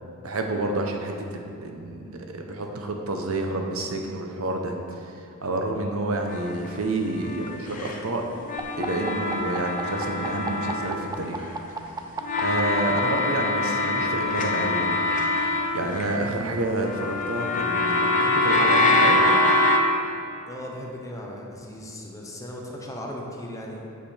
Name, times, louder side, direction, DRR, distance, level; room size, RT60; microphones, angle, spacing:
voice 1, 0.2-5.1 5.4-8.2 8.8-11.5 12.4-19.2, right 2 dB, 75° right, 3 dB, 0.9 m, -29 dB
sound 1, 6.3-8.0 8.4-11.5 12.2-16.4 16.8-19.8, left 2 dB, 40° left, 0.7 m, -24 dB
sound 2, 8.6-13.2 14.3-16.6, right 4 dB, 20° right, 0.5 m, -35 dB
voice 2, 20.5-23.8, left 1 dB, 15° left, -1 dB, 1.0 m, -37 dB
8.3 x 6.8 x 4.4 m, 2.6 s
head